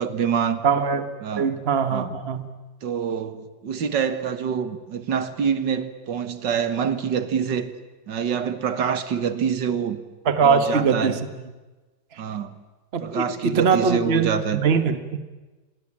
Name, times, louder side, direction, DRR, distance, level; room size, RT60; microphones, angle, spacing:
voice 1, 0.0-0.6 1.2-1.5 1.9-2.1 2.8-7.7 8.1-10.0 10.4-11.2 12.2-12.5 13.0-14.6, right 7 dB, 75° right, 12 dB, 2.1 m, -26 dB
voice 2, 0.6-1.0 1.4-2.4 10.2-11.2 12.9-15.2, right 5 dB, 35° right, 11 dB, 1.6 m, -21 dB
27.0 x 22.0 x 8.7 m, 1.2 s
omnidirectional pair, 1.9 m